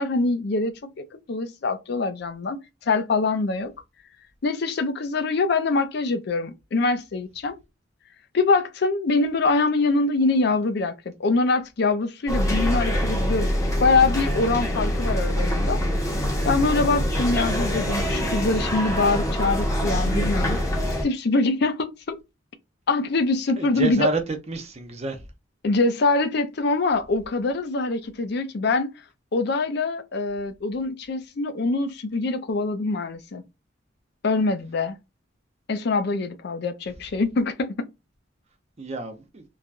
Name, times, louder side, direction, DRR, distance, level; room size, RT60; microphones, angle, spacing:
voice 1, 0.0-2.6 2.9-3.7 4.4-7.5 8.3-10.9 11.2-13.5 13.8-15.8 16.4-20.6 21.0-22.2 22.9-24.1 25.6-28.9 29.3-33.4 34.2-35.0 35.7-37.9, left 3 dB, 60° left, 0.5 m, -24 dB
sound 1, 12.3-21.0, equal, 15° left, 0.9 m, -24 dB
voice 2, 23.6-24.2 24.5-25.2 38.8-39.4, right 2 dB, 35° right, 0.6 m, -28 dB
3.2 x 2.2 x 2.4 m
head